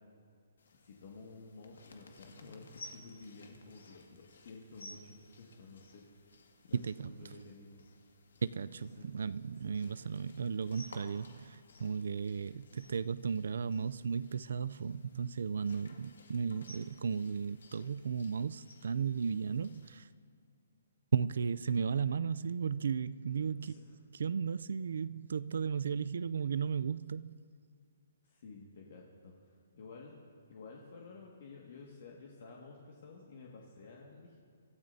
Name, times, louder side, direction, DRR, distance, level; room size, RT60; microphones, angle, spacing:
sound 1, 0.6-20.0, left 2 dB, 90° left, 1.9 m, -58 dB
voice 1, 0.8-6.1 6.6-6.8 7.0-7.8 9.0-9.1 9.7-9.8 23.4-23.9 28.2-30.1 30.5-34.4, left 3 dB, 50° left, 1.8 m, -52 dB
voice 2, 6.7-7.1 8.4-20.1 21.1-23.7 24.1-27.4, right 6 dB, 70° right, 0.4 m, -35 dB
25.5 x 13.5 x 2.7 m
hypercardioid pair, 170°, 0 cm